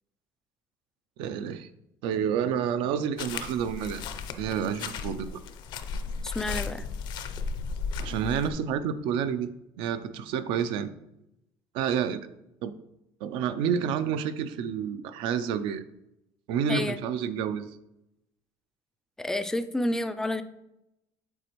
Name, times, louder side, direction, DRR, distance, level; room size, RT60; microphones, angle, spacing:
voice 1, 1.2-1.7 2.0-4.0 4.4-5.3 8.0-9.5 9.8-10.9 11.7-12.3 12.6-12.7 13.2-15.8 16.5-17.7, right 8 dB, 75° right, 12 dB, 0.5 m, -29 dB
sound 1, 3.2-8.5, left 5 dB, 60° left, 0.5 m, -35 dB
voice 2, 6.2-6.9 16.7-17.0 19.2-20.4, left 1 dB, 5° left, 10 dB, 0.3 m, -29 dB
8.0 x 4.2 x 3.0 m, 0.86 s
cardioid pair, 125°, 9 cm